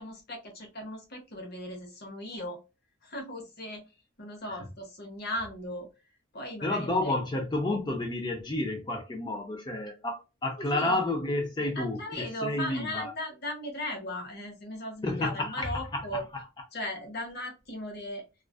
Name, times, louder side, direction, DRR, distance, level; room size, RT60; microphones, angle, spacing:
voice 1, 0.0-2.6 3.0-3.9 4.2-5.9 6.3-7.1 10.6-11.0 11.8-16.2 16.7-18.2, left 1 dB, 45° left, 0.8 m, -37 dB
voice 2, 6.6-13.1 15.0-16.2, left 2 dB, 20° left, 0.4 m, -30 dB
2.4 x 2.3 x 2.2 m
head